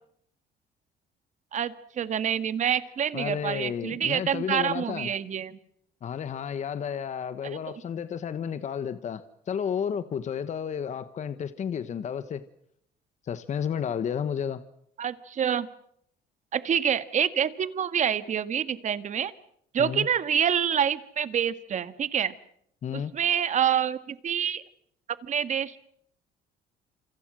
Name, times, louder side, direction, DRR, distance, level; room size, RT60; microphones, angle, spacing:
voice 1, 1.5-5.6 7.4-7.8 15.0-15.7 16.5-19.3 19.7-22.3 22.9-24.6 25.2-25.8, right 8 dB, 45° right, 13 dB, 1.8 m, -27 dB
voice 2, 3.1-5.1 6.0-12.4 13.2-14.6 19.8-20.1 22.8-23.1, left 8 dB, 45° left, 12 dB, 1.3 m, -32 dB
27.5 x 26.5 x 6.3 m, 0.70 s
cardioid pair, 110°, 17 cm